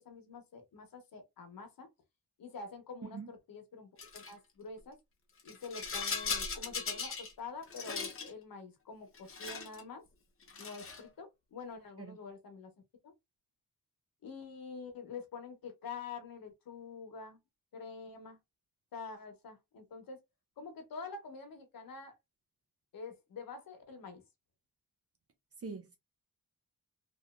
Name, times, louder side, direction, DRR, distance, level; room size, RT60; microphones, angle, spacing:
voice 1, 0.0-1.9 2.4-5.0 5.4-10.0 10.6-12.7 13.0-13.1 14.2-17.4 17.7-18.4 18.9-20.2 20.6-22.1 22.9-24.2, left 4 dB, 80° left, 1.0 m, -47 dB
voice 2, 3.0-3.3 12.0-12.2 25.6-26.0, right 4 dB, 45° right, 0.5 m, -43 dB
Rattle, 4.0-4.3 5.4-7.3 7.6-8.3 9.1-9.8 10.4-11.1, left 5 dB, 40° left, 0.7 m, -38 dB
3.0 x 2.6 x 2.3 m
wide cardioid pair, 155°, 34 cm